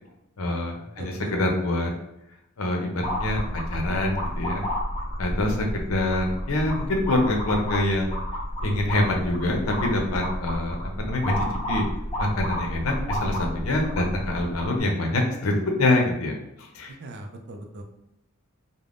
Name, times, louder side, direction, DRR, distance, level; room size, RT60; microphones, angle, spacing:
voice 1, 0.4-1.9 2.6-3.4 3.7-4.6 5.2-5.5 5.9-8.2 8.6-11.9 12.2-15.5 15.8-16.3 16.8-16.9, left 1 dB, 85° left, 2 dB, 0.6 m, -25 dB
voice 2, 1.0-1.3 16.9-17.8, right 1 dB, 55° right, 4 dB, 0.4 m, -40 dB
sound 1, 3.0-14.8, equal, 25° left, 0.6 m, -31 dB
3.4 x 2.1 x 2.4 m, 0.83 s
head